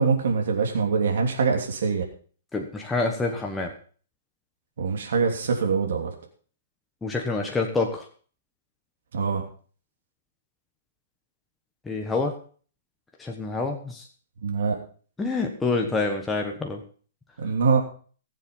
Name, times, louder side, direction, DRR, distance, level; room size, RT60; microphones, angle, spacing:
voice 1, 0.0-2.0 4.8-6.1 9.1-9.4 14.4-14.8 17.4-17.8, right 5 dB, 70° right, 2 dB, 3.0 m, -24 dB
voice 2, 2.5-3.7 7.0-8.1 11.9-12.3 13.2-14.0 15.2-16.8, left 3 dB, 5° left, 1 dB, 1.3 m, -27 dB
19.0 x 7.5 x 5.4 m, 0.42 s
hypercardioid pair, 160°, 0 cm